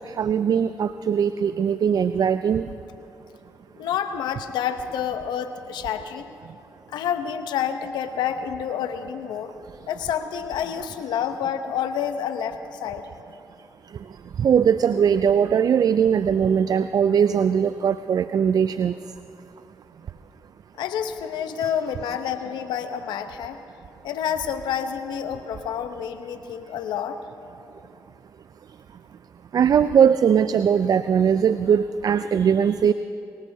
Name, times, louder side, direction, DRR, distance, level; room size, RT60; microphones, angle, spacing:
voice 1, 0.2-2.7 14.4-18.9 29.5-32.9, right 7 dB, 60° right, 13 dB, 0.4 m, -20 dB
voice 2, 3.8-6.3 6.9-9.5 9.9-13.1 20.8-23.6 24.0-27.2, left 8 dB, 85° left, 9 dB, 0.8 m, -28 dB
23.5 x 18.0 x 2.8 m, 2.6 s
supercardioid pair, 45°, 7 cm